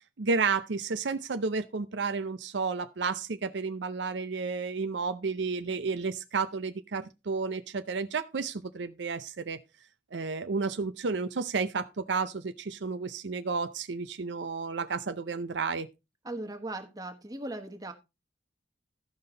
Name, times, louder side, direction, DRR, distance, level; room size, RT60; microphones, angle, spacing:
voice 1, 0.2-9.6 10.1-15.9, right 4 dB, 75° right, 0.6 m, -32 dB
voice 2, 16.2-17.9, right 2 dB, 20° right, 1.3 m, -38 dB
14.0 x 5.7 x 3.9 m
head